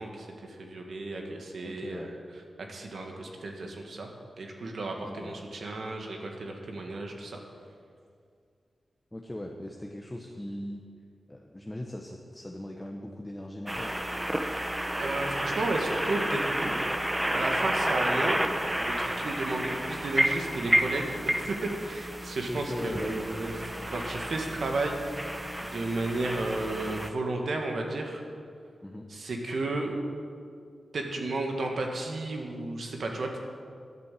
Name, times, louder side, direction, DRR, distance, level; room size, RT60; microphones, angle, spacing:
voice 1, 0.0-2.2 2.7-4.1 4.4-7.4 15.0-16.8 17.3-18.5 18.8-21.6 21.8-23.5 23.9-25.3 25.6-28.2 29.1-30.0 30.9-33.3, right 2 dB, 75° right, 2 dB, 1.8 m, -33 dB
voice 2, 1.6-2.1 5.0-5.3 9.1-10.9 11.3-14.0 22.5-23.3 23.6-23.9 28.8-29.1, left 1 dB, 15° left, 1 dB, 1.1 m, -39 dB
sound 1, 13.7-27.1, right 1 dB, 10° right, 0.8 m, -31 dB
11.5 x 8.6 x 7.6 m, 2.2 s
cardioid pair, 70°, 0 cm